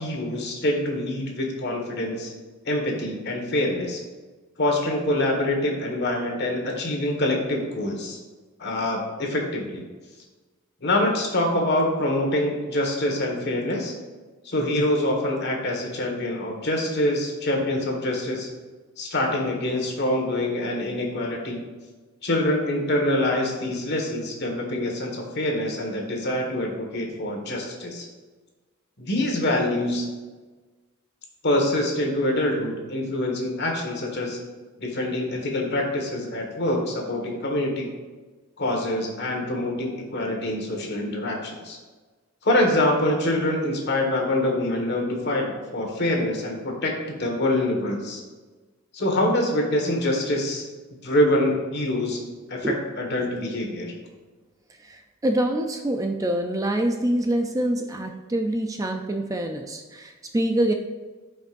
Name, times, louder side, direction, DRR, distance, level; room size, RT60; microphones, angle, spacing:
voice 1, 0.0-2.3 2.6-4.0 4.6-8.2 8.6-9.8 10.8-13.9 14.4-18.5 19.0-21.6 22.2-28.1 29.0-30.1 31.4-34.4 34.8-37.9 38.6-41.8 42.4-48.2 48.9-50.6 51.0-52.2 52.5-53.9, left 1 dB, 50° left, 1 dB, 1.6 m, -25 dB
voice 2, 54.8-60.7, right 1 dB, 15° right, 4 dB, 0.4 m, -25 dB
14.0 x 5.3 x 2.6 m, 1.3 s
head